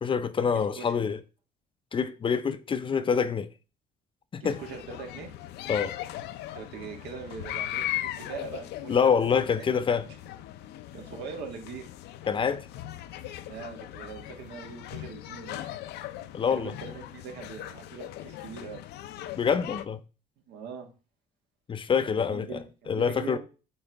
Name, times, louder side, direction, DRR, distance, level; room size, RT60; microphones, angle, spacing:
voice 1, 0.0-1.2 1.9-3.5 4.3-4.6 5.7-6.0 8.9-10.1 12.3-12.7 16.3-16.7 19.4-20.0 21.7-22.6 22.9-23.4, left 6 dB, 30° left, 0.5 m, -26 dB
voice 2, 0.5-1.0 4.4-5.3 6.5-9.1 9.6-9.8 10.9-11.9 13.4-15.7 16.5-18.8 20.5-20.9 22.0-23.4, right 6 dB, 80° right, 1.6 m, -42 dB
sound 1, 4.4-19.9, left 13 dB, 80° left, 0.5 m, -39 dB
8.6 x 3.9 x 3.4 m
cardioid pair, 110°, 17 cm